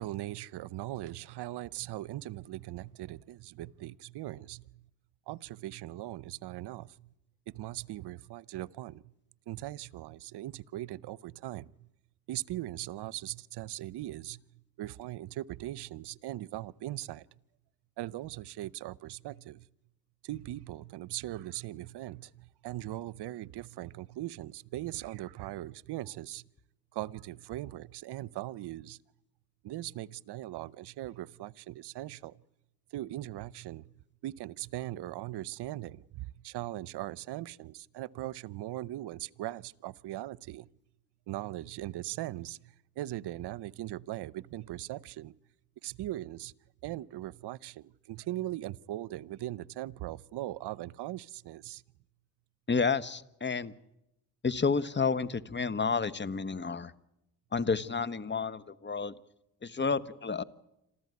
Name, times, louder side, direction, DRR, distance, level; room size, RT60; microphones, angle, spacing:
voice 1, 0.0-4.8 5.3-7.1 7.5-9.0 9.5-11.7 12.3-14.4 14.8-17.3 18.0-19.7 20.2-26.4 26.9-29.0 29.6-32.3 32.9-33.8 34.2-40.7 41.3-45.3 45.8-46.5 46.8-51.8, right 15 dB, 75° right, 0.8 m, -40 dB
voice 2, 52.7-53.7 54.4-56.9 57.5-59.1 59.6-60.4, left 5 dB, 25° left, 1.2 m, -30 dB
26.5 x 14.5 x 9.5 m
supercardioid pair, 60°, 41 cm